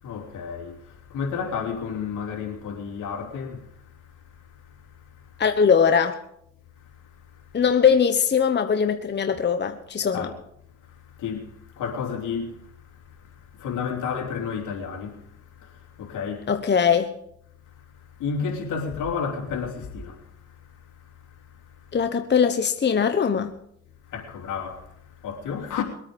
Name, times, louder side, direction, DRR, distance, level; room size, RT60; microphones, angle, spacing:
voice 1, 0.0-5.4 6.8-7.6 10.1-10.4 10.8-16.5 17.6-22.0 24.0-25.8, left 6 dB, 80° left, 3.5 m, -33 dB
voice 2, 5.4-6.2 7.5-10.3 16.5-17.1 21.9-23.5, left 6 dB, 35° left, 1.1 m, -21 dB
22.5 x 8.9 x 5.3 m
cardioid pair, 90°, 30 cm